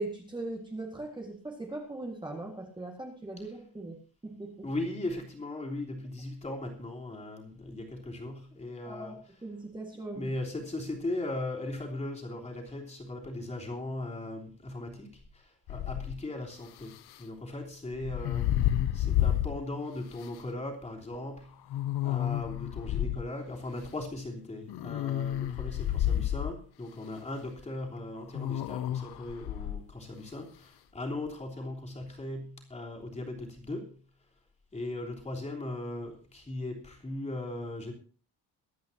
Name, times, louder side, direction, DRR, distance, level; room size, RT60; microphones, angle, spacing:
voice 1, 0.0-4.0 4.2-4.7 8.9-9.2 9.4-10.3, right 2 dB, 10° right, 0 dB, 2.0 m, -39 dB
voice 2, 4.6-9.2 10.1-18.5 18.9-21.5 22.0-33.9 34.7-37.9, left 2 dB, 15° left, 0 dB, 3.3 m, -38 dB
sound 1, 15.7-16.2 17.9-19.6 20.2-20.3 21.7-23.2 24.7-26.6 28.3-29.8, left 12 dB, 75° left, 0.8 m, -30 dB
23.5 x 9.3 x 2.9 m, 0.40 s
cardioid pair, 180°, 39 cm